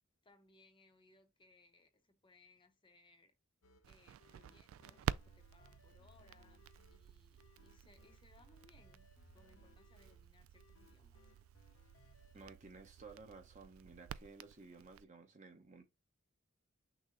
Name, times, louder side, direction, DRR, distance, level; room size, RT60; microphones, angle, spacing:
voice 1, 0.2-3.4 3.9-11.2, left 3 dB, 25° left, 0.7 m, -68 dB
sound 1, 3.6-12.5, left 4 dB, 90° left, 0.7 m, -68 dB
Crackle, 3.8-15.0, right 9 dB, 85° right, 0.3 m, -49 dB
voice 2, 12.3-15.8, right 3 dB, 40° right, 1.0 m, -55 dB
6.1 x 2.1 x 3.8 m
head